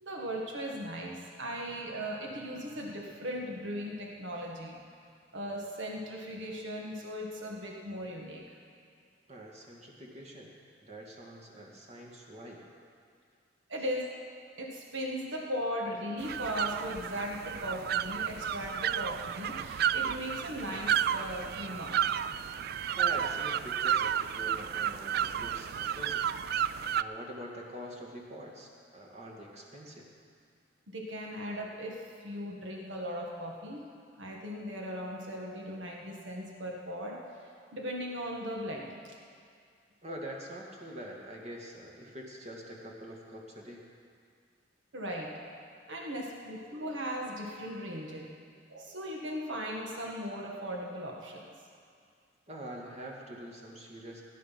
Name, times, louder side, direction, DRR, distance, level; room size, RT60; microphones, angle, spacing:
voice 1, 0.0-4.8 5.3-8.4 13.7-14.1 14.6-21.9 30.9-33.8 34.2-37.2 37.7-39.0 44.9-45.3 45.9-48.3 48.7-51.4, equal, 80° right, -1 dB, 1.8 m, -38 dB
voice 2, 9.3-10.5 10.8-12.7 23.0-26.2 26.6-30.1 40.0-43.9 52.5-54.3, right 1 dB, 35° right, -1 dB, 2.1 m, -45 dB
sound 1, 16.2-27.0, right 9 dB, 55° right, 0.3 m, -32 dB
17.0 x 10.5 x 5.8 m, 2.2 s
head